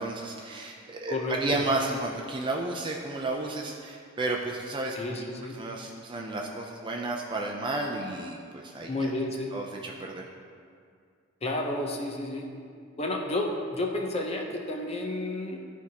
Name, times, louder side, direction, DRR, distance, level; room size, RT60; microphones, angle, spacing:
voice 1, 0.0-5.2 5.5-9.1 9.5-10.3, right 2 dB, 25° right, 0 dB, 0.5 m, -32 dB
voice 2, 1.1-1.4 4.9-5.6 8.9-9.5 11.4-12.5 13.0-15.6, left 2 dB, 30° left, 1 dB, 0.6 m, -31 dB
12.5 x 4.6 x 2.8 m, 2.2 s
head